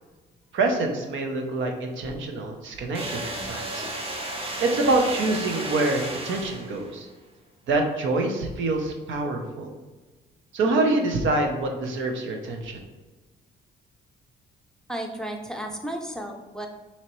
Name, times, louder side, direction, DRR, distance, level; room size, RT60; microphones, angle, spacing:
voice 1, 0.5-3.9 4.6-7.1 7.7-9.7 10.5-12.8, right 2 dB, 75° right, 3 dB, 0.7 m, -26 dB
sound 1, 2.9-7.0, right 1 dB, 30° right, 0.9 m, -33 dB
voice 2, 14.9-16.7, right 1 dB, 5° left, 2 dB, 0.5 m, -33 dB
4.2 x 2.9 x 3.0 m, 1.3 s
cardioid pair, 90°, 20 cm